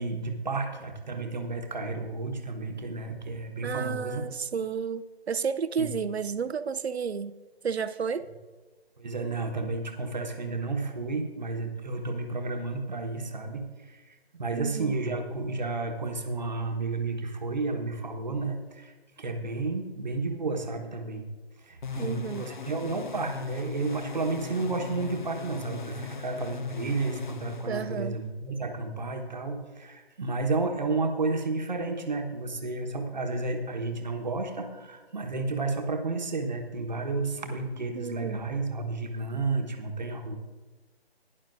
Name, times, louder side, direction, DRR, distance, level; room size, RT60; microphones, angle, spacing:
voice 1, 0.0-4.2 5.8-5.9 9.0-14.0 14.3-18.9 19.2-21.3 21.6-40.4, right 3 dB, 45° right, 4 dB, 1.3 m, -32 dB
voice 2, 3.6-7.3 7.6-8.3 14.5-14.9 22.0-22.5 27.7-28.2 37.9-38.4, right 6 dB, 75° right, 12 dB, 0.7 m, -32 dB
sound 1, 21.8-28.3, left 6 dB, 50° left, 0.6 m, -39 dB
16.5 x 10.5 x 2.6 m, 1.3 s
figure-of-eight pair, 170°, 32 cm